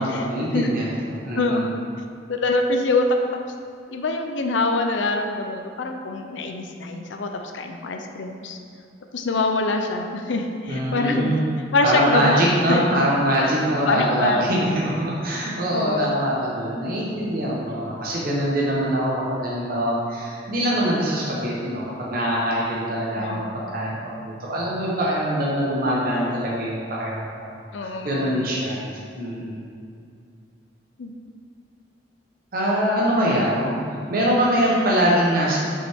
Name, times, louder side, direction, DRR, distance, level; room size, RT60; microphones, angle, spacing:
voice 1, 0.0-1.7 10.7-11.5 11.8-27.5 27.8-28.8 29.2-29.6 32.5-35.6, equal, 55° right, -6 dB, 1.1 m, -23 dB
voice 2, 1.4-1.8 2.3-3.4 3.9-8.6 9.1-11.3 11.7-12.4 12.7-13.0 13.9-14.5 15.7-16.1 23.2-23.4 27.7-28.3 31.0-31.1 33.2-33.5 34.9-35.0, left 2 dB, 90° left, 4 dB, 0.6 m, -24 dB
6.9 x 5.5 x 3.6 m, 2.4 s
head